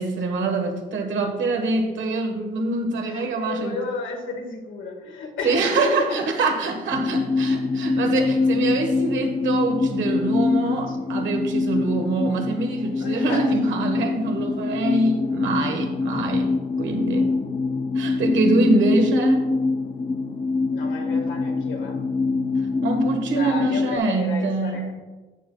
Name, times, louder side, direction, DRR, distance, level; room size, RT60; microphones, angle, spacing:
voice 1, 0.0-3.8 5.4-16.5 16.8-17.3 17.9-19.5 22.8-24.9, right 3 dB, 70° right, 4 dB, 1.4 m, -24 dB
voice 2, 3.0-6.2 10.9-11.0 13.0-13.5 20.7-22.0 23.4-24.9, left 4 dB, 75° left, 1 dB, 1.7 m, -32 dB
sound 1, 6.9-24.0, left 3 dB, 25° left, 0.6 m, -24 dB
11.5 x 7.5 x 2.3 m, 1.2 s
cardioid pair, 90°, 20 cm